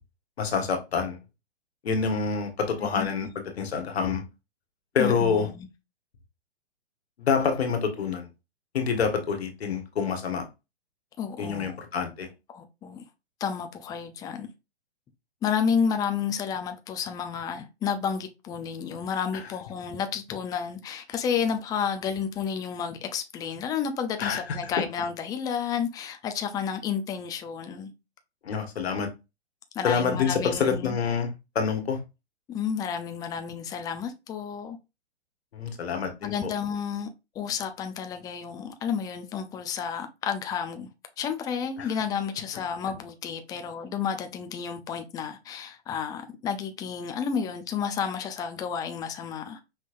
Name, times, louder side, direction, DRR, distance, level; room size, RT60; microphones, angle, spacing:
voice 1, 0.4-1.2 1.8-3.3 3.6-4.2 4.9-5.5 7.2-8.3 8.7-10.4 11.4-12.3 24.2-24.7 28.4-29.1 29.8-31.3 31.5-32.0 35.5-36.5 41.8-41.9, left 5 dB, 70° left, 1.6 m, -27 dB
voice 2, 2.7-3.1 5.0-5.7 11.2-11.8 12.5-13.0 13.4-14.5 15.4-27.9 29.7-31.0 32.5-34.8 36.2-37.1 37.3-40.9 41.2-49.6, left 7 dB, 10° left, 0.5 m, -31 dB
5.6 x 3.2 x 2.5 m
hypercardioid pair, 125°, 33 cm